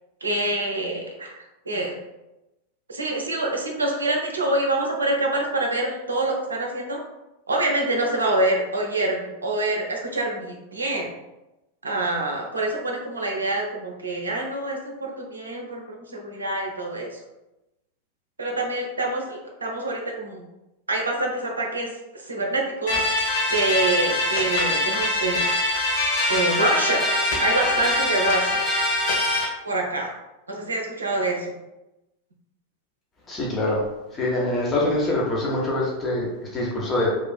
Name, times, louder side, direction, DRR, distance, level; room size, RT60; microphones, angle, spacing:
voice 1, 0.2-2.0 2.9-7.0 7.5-11.1 11.8-17.2 18.4-20.4 20.9-25.5 26.3-27.0 27.4-28.6 29.6-30.1 30.5-31.6, right 2 dB, 75° right, 1 dB, 0.5 m, -26 dB
sound 1, 22.9-29.4, left 1 dB, 40° left, 1.3 m, -23 dB
voice 2, 33.3-33.8 34.1-37.1, left 1 dB, 20° left, -4 dB, 0.7 m, -24 dB
3.0 x 2.4 x 2.3 m, 0.98 s
figure-of-eight pair, 90°, 0 cm